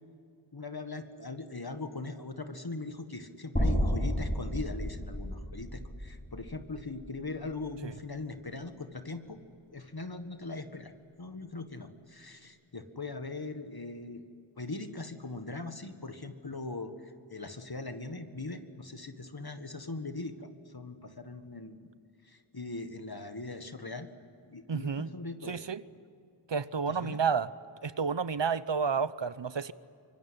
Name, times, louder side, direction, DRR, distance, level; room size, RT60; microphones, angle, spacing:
voice 1, 0.5-9.4 9.7-14.2 14.6-21.9 22.2-24.1 24.5-25.6 26.9-27.2, left 3 dB, 50° left, 8 dB, 1.8 m, -40 dB
sound 1, 3.6-7.7, equal, 20° left, 6.6 m, -32 dB
voice 2, 24.7-25.1 25.5-25.8 26.5-27.5 27.8-29.7, right 6 dB, 60° right, 16 dB, 0.9 m, -30 dB
25.0 x 23.5 x 9.9 m, 2.5 s
wide cardioid pair, 40°, 48 cm